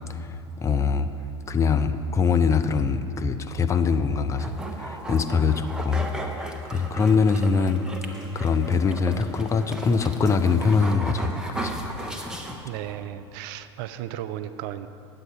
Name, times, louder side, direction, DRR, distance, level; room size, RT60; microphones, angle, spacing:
voice 1, 0.6-1.1 1.5-6.0 6.7-7.8 8.3-11.3 11.6-11.8, left 5 dB, 20° left, 8 dB, 0.4 m, -23 dB
sound 1, 4.4-13.0, right 1 dB, 5° right, 0.9 m, -36 dB
sound 2, 8.1-10.1 10.3-10.4 10.7-10.9 11.2-13.2, equal, 90° left, 2.5 m, -48 dB
voice 2, 12.6-14.9, right 11 dB, 50° right, 12 dB, 0.4 m, -35 dB
9.4 x 7.8 x 5.2 m, 2.7 s
figure-of-eight pair, 75°, 15 cm